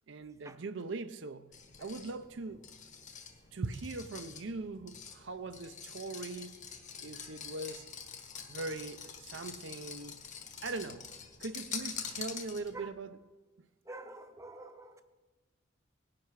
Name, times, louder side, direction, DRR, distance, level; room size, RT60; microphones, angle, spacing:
voice 1, 0.1-1.5 1.8-2.6 3.5-6.6 7.0-7.8 8.5-10.2 10.6-11.1 11.4-13.2, right 3 dB, 65° right, 0.6 m, -40 dB
sound 1, 1.5-12.9, left 6 dB, 40° left, 1.3 m, -46 dB
voice 2, 13.8-15.0, right 2 dB, 15° right, 0.8 m, -47 dB
18.5 x 10.5 x 4.8 m
head